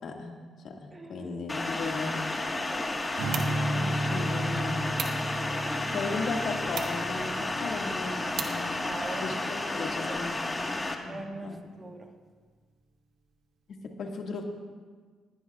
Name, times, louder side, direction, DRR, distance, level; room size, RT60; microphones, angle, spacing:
voice 1, 0.0-0.4 0.6-2.1 3.7-4.9 5.9-8.8 9.2-11.6 13.7-14.4, left 3 dB, 60° left, 1 dB, 2.0 m, -36 dB
voice 2, 0.9-1.4 2.7-3.0 3.8-4.0 5.6-6.1 8.9-10.3 11.1-12.1, right 2 dB, 25° right, 3 dB, 1.5 m, -42 dB
sound 1, 1.5-10.9, left 2 dB, 20° left, 1.5 m, -32 dB
sound 2, 2.9-9.3, right 6 dB, 70° right, 1.7 m, -42 dB
Strum, 3.2-9.6, right 1 dB, 90° right, 2.2 m, -34 dB
19.5 x 16.5 x 2.4 m, 1.5 s
cardioid pair, 90°, 0 cm